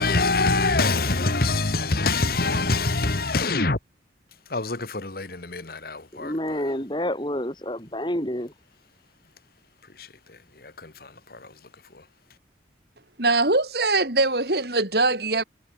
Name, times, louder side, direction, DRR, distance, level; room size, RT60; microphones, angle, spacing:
voice 1, 0.0-3.8 4.5-6.6 10.0-11.5 11.9-12.0, left 3 dB, 55° left, 1.8 m, -25 dB
voice 2, 6.1-8.5, left 1 dB, 25° left, 7.5 m, -28 dB
voice 3, 13.2-15.4, right 2 dB, 60° right, 5.5 m, -22 dB
head